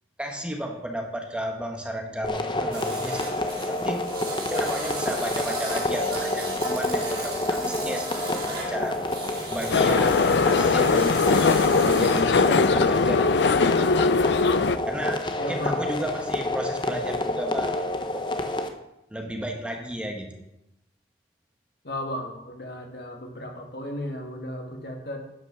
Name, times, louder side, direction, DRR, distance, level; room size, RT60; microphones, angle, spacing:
voice 1, 0.2-4.0 4.5-8.1 8.4-9.0 9.5-11.1 11.8-14.0 14.9-17.7 18.1-18.2 19.1-20.3, equal, 5° right, 2 dB, 1.1 m, -33 dB
sound 1, 2.2-18.7, left 2 dB, 25° left, 0.7 m, -28 dB
sound 2, 2.7-12.2, right 3 dB, 30° right, 3.0 m, -36 dB
sound 3, 9.7-14.8, left 4 dB, 75° left, 0.5 m, -20 dB
voice 2, 15.4-15.8 21.8-25.2, left 1 dB, 60° left, 3 dB, 1.7 m, -34 dB
10.0 x 5.9 x 6.8 m, 0.88 s
head